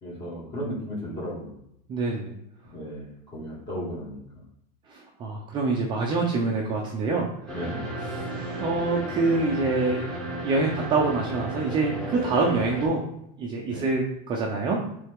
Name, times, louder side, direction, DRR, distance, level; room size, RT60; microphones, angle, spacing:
voice 1, 0.0-1.5 2.7-4.4 7.5-7.9 13.7-13.8, equal, 20° left, -5 dB, 2.3 m, -35 dB
voice 2, 1.9-2.3 4.9-7.3 8.1-10.1 10.4-13.0 13.4-14.8, right 3 dB, 20° right, -1 dB, 0.7 m, -26 dB
sound 1, 7.5-12.9, right 1 dB, 5° left, 1.4 m, -33 dB
8.6 x 3.4 x 3.7 m, 0.76 s
supercardioid pair, 165°, 21 cm